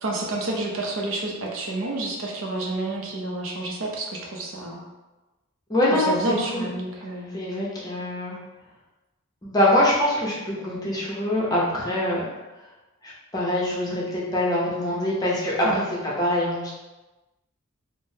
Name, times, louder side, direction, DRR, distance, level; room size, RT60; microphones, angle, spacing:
voice 1, 0.0-4.8 5.9-7.4 15.6-15.8, right 2 dB, 65° right, -1 dB, 0.6 m, -29 dB
voice 2, 5.7-6.7 7.3-8.4 9.4-12.3 13.0-15.7 16.2-16.7, left 1 dB, 20° left, -6 dB, 0.6 m, -24 dB
3.6 x 2.0 x 2.7 m, 1.1 s
head